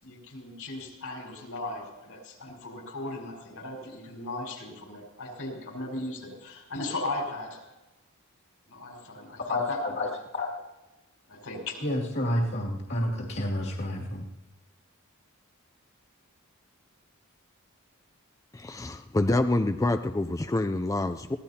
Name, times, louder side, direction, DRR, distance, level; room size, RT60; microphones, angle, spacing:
voice 1, 0.0-7.6 8.7-9.4 9.7-9.8 11.3-11.8, left 2 dB, 85° left, -1 dB, 4.8 m, -37 dB
voice 2, 9.5-10.5 11.8-14.2, left 1 dB, 55° left, -2 dB, 2.3 m, -29 dB
voice 3, 18.5-21.4, left 2 dB, 15° left, 8 dB, 0.4 m, -27 dB
23.0 x 17.0 x 2.9 m, 1.1 s
head